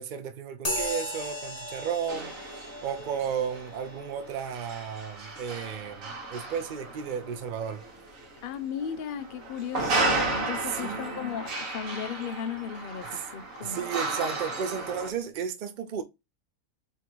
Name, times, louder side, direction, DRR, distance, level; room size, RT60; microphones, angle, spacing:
voice 1, 0.0-2.3 2.8-7.8 10.7-11.2 13.1-13.2 13.6-16.0, right 7 dB, 45° right, 0.6 m, -33 dB
sound 1, 0.6-8.5, left 1 dB, 25° left, 1.3 m, -39 dB
sound 2, 2.1-15.1, right 2 dB, 70° right, 1.5 m, -34 dB
voice 2, 8.4-13.8, left 8 dB, 65° left, 0.5 m, -36 dB
3.8 x 3.0 x 4.5 m
omnidirectional pair, 1.5 m